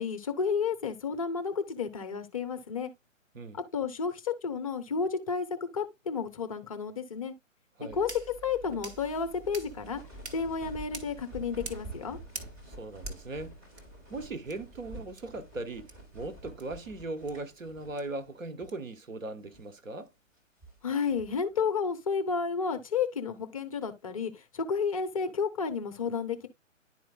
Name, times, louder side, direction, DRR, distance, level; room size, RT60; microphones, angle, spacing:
voice 1, 0.0-2.9 3.5-5.5 5.7-7.3 7.9-8.1 8.4-10.0 10.3-12.2 20.8-26.5, left 5 dB, 25° left, 0.6 m, -31 dB
sound 1, 7.9-13.8 14.5-14.6 15.2-15.3 15.9-16.0 16.6-16.7 17.3-17.4 18.0-18.1 18.7-18.8, right 4 dB, 55° right, 1.4 m, -47 dB
sound 2, 8.8-18.3 18.6-18.7 19.3-19.8 20.3-21.4, right 1 dB, 20° right, 3.6 m, -48 dB
voice 2, 12.7-13.6 14.1-20.1, right 2 dB, 75° right, 1.1 m, -39 dB
11.0 x 4.3 x 2.2 m
figure-of-eight pair, 130°, 39 cm